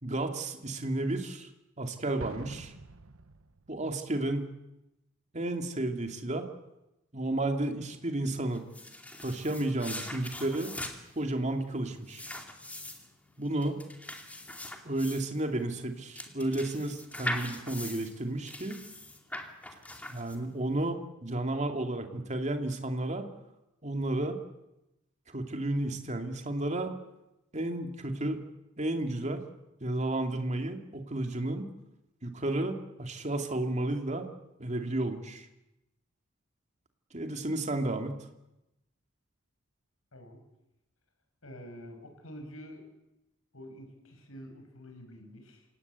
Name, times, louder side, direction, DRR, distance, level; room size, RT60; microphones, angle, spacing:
voice 1, 0.0-1.5 1.8-2.7 3.7-4.5 5.3-6.5 7.1-8.6 9.2-10.7 11.2-12.3 13.4-13.8 14.8-18.8 19.7-19.8 20.1-23.2 23.8-24.4 25.3-26.9 27.5-28.4 28.8-29.4 29.8-31.6 32.2-34.3 34.6-35.5 37.1-38.3, right 1 dB, 35° right, 5 dB, 2.5 m, -32 dB
Explosion, 2.2-4.0, right 3 dB, 85° right, 1.0 m, -47 dB
sound 1, 8.5-20.7, left 1 dB, 5° left, 2.6 m, -41 dB
voice 2, 41.4-42.9 43.5-45.7, equal, 85° left, 5 dB, 6.1 m, -47 dB
27.5 x 18.0 x 8.3 m, 0.92 s
head